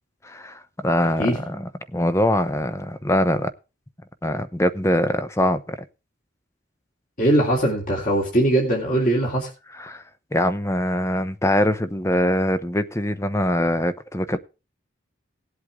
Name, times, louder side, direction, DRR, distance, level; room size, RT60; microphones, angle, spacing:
voice 1, 0.2-3.5 4.2-5.8 9.7-10.0 10.3-14.4, left 1 dB, 15° left, 0.8 m, -23 dB
voice 2, 1.0-1.4 7.2-9.5, right 1 dB, 40° left, 3.2 m, -21 dB
18.5 x 8.1 x 3.6 m
head